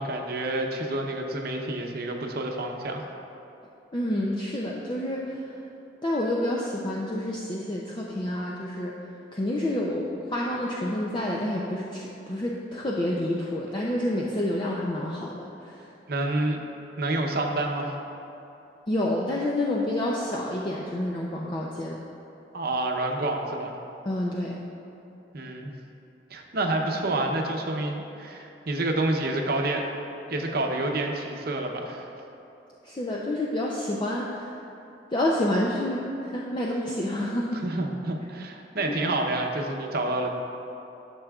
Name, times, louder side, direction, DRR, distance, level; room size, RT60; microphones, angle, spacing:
voice 1, 0.0-3.0 16.1-16.6 17.0-18.0 22.5-23.7 25.3-25.7 26.3-29.9 30.3-32.1 37.6-40.4, right 2 dB, 55° right, 2 dB, 0.7 m, -28 dB
voice 2, 3.9-5.6 6.0-9.0 9.3-15.8 18.9-22.0 24.1-24.6 32.8-34.5 35.1-37.6 38.9-39.0, left 1 dB, 25° left, -3 dB, 0.5 m, -28 dB
12.0 x 6.6 x 2.4 m, 2.9 s
head